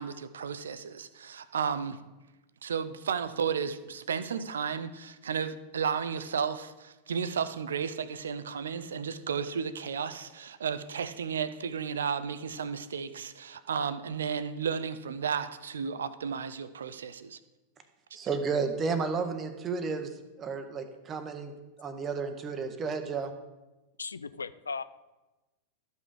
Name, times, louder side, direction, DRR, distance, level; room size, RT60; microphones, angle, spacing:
voice 1, 0.0-2.0 2.6-17.4, right 6 dB, 65° right, 14 dB, 0.6 m, -33 dB
voice 2, 18.1-21.5 21.8-23.3, right 5 dB, 25° right, 9 dB, 1.1 m, -32 dB
voice 3, 24.0-24.8, left 5 dB, 75° left, 14 dB, 0.4 m, -37 dB
13.0 x 5.4 x 5.0 m, 1.1 s
figure-of-eight pair, 90°, 0 cm